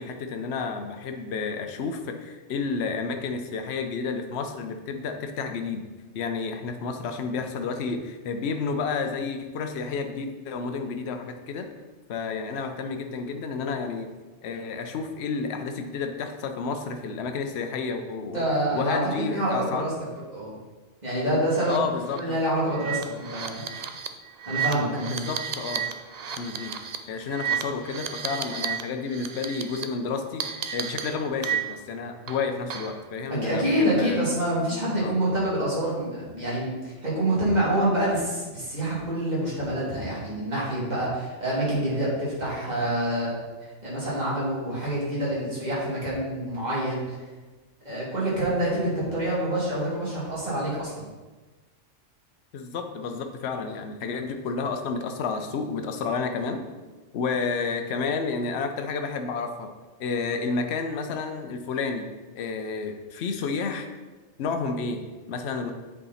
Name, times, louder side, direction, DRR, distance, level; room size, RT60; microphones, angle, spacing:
voice 1, 0.0-5.9 6.1-11.7 12.1-14.1 14.4-18.4 18.7-19.9 21.7-22.4 25.1-25.9 26.4-26.8 27.1-30.4 30.7-34.2 35.0-35.1 52.5-56.6 57.1-59.7 60.0-63.9 64.4-65.7, left 4 dB, 60° left, 6 dB, 0.9 m, -31 dB
voice 2, 18.3-19.0 19.3-19.9 20.3-20.5 21.0-21.9 22.1-23.6 24.5-25.2 33.3-43.3 43.8-47.0 47.8-51.0, right 1 dB, 35° right, -8 dB, 2.7 m, -26 dB
sound 1, 21.5-21.8 22.1-22.2 22.7-28.8 29.1-29.8 30.4-31.9 32.3-33.0, right 8 dB, 65° right, 0.4 m, -32 dB
8.0 x 5.0 x 4.2 m, 1.3 s
omnidirectional pair, 1.3 m